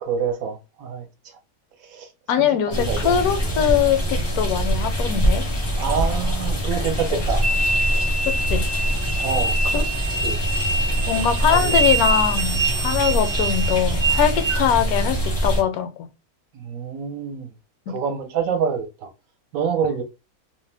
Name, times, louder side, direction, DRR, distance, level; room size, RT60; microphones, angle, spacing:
voice 1, 0.0-1.1 1.8-2.1 2.4-3.7 5.8-7.4 9.2-9.8 10.2-10.4 11.1-11.8 16.5-17.5 17.9-19.1 19.5-20.0, right 6 dB, 70° right, 1.1 m, -27 dB
voice 2, 2.3-5.5 7.1-7.2 8.3-8.7 9.7-9.9 11.1-16.1 17.9-18.0, left 9 dB, 75° left, 1.0 m, -22 dB
sound 1, 2.7-15.6, right 1 dB, 30° left, 0.5 m, -24 dB
sound 2, 7.4-14.6, right 3 dB, 50° right, 0.5 m, -25 dB
2.7 x 2.1 x 3.2 m
omnidirectional pair, 1.6 m